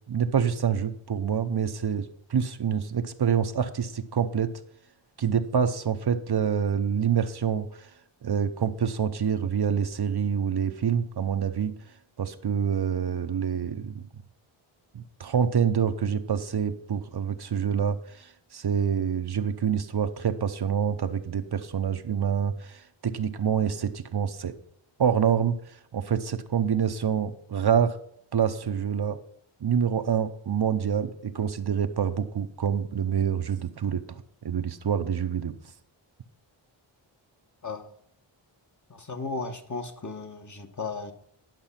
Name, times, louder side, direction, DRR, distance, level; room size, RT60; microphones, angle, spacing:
voice 1, 0.1-4.5 5.2-7.9 8.2-11.7 12.2-14.1 14.9-24.5 25.0-25.6 25.9-28.0 28.3-29.2 29.6-35.5, right 7 dB, 50° right, 8 dB, 0.7 m, -26 dB
voice 2, 38.9-41.1, left 3 dB, 35° left, 6 dB, 1.2 m, -35 dB
10.5 x 6.0 x 5.7 m, 0.67 s
wide cardioid pair, 65°, 50 cm